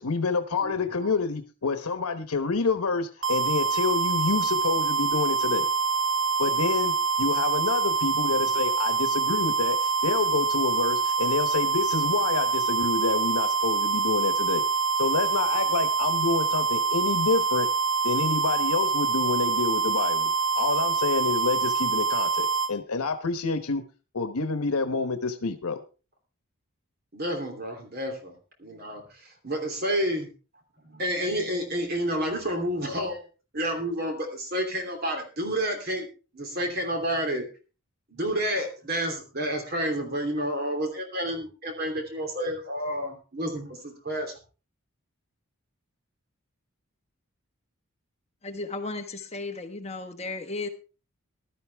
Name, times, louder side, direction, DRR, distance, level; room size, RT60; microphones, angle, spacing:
voice 1, 0.0-5.7 6.4-14.6 15.0-17.7 18.0-20.3 20.6-23.8 24.1-25.8, left 4 dB, 90° left, 9 dB, 1.1 m, -28 dB
sound 1, 3.2-22.7, right 5 dB, 60° right, 1.8 m, -25 dB
voice 2, 27.1-28.3 28.6-30.3 30.8-33.2 33.5-36.1 36.3-37.4 38.1-44.3, equal, 45° right, 4 dB, 3.0 m, -30 dB
voice 3, 48.4-50.7, left 3 dB, 30° left, 6 dB, 1.2 m, -34 dB
15.0 x 12.5 x 3.4 m, 0.34 s
head